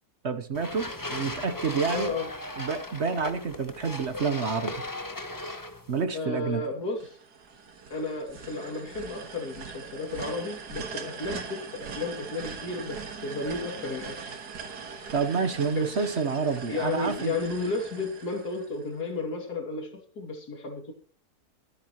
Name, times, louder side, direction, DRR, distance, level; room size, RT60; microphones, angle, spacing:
voice 1, 0.2-2.1 2.6-4.7 5.9-6.6 15.1-17.4, right 5 dB, 50° right, 1.1 m, -28 dB
sound 1, 0.5-6.0, left 2 dB, 15° left, 1.0 m, -37 dB
voice 2, 1.9-2.3 6.1-7.2 7.9-14.4 15.7-16.1 16.7-20.9, left 3 dB, 80° left, 3.1 m, -33 dB
sound 2, 7.0-19.1, right 5 dB, 85° right, 2.2 m, -41 dB
24.0 x 8.5 x 3.0 m
omnidirectional pair, 1.7 m